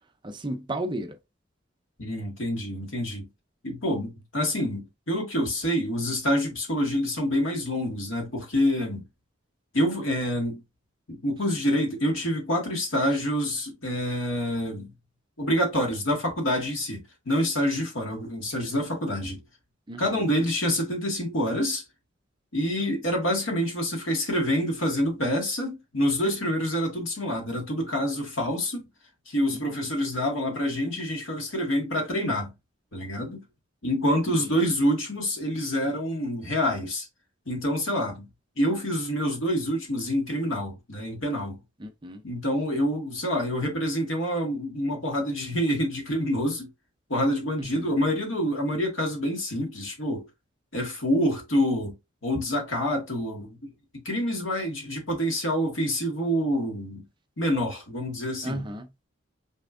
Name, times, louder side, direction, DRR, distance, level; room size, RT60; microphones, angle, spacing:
voice 1, 0.2-1.2 19.9-20.1 29.5-29.6 34.5-34.6 41.8-42.2 47.6-47.9 58.4-58.9, right 1 dB, 20° right, 0.5 m, -34 dB
voice 2, 2.0-3.3 3.6-9.0 9.7-10.6 11.1-14.9 15.4-19.4 20.0-21.8 22.5-28.8 29.3-32.5 32.9-33.4 33.8-37.1 37.5-38.3 38.6-41.6 42.2-46.7 47.1-50.2 50.7-51.9 52.2-53.7 54.1-57.0 57.4-58.6, equal, 75° left, 1.9 m, -27 dB
5.5 x 3.5 x 2.5 m
head